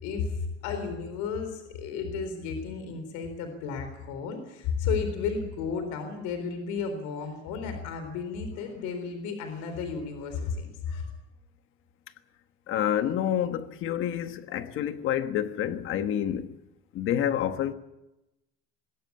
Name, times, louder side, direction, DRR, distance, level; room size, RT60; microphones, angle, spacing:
voice 1, 0.0-11.1, left 5 dB, 85° left, 4.0 m, -33 dB
voice 2, 12.7-16.6 16.9-17.7, left 10 dB, 45° left, 1.3 m, -28 dB
21.0 x 17.5 x 8.5 m
cardioid pair, 180°, 29 cm